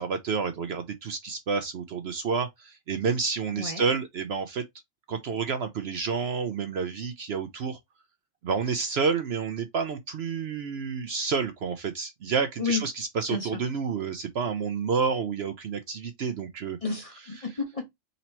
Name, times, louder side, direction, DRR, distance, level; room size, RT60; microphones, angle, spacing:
voice 1, 0.0-4.6 5.1-7.8 8.4-16.8 17.4-17.5, right 5 dB, 60° right, 0.8 m, -29 dB
voice 2, 13.3-13.6 16.8-17.9, left 4 dB, 30° left, 0.9 m, -31 dB
4.0 x 2.8 x 4.3 m
omnidirectional pair, 1.4 m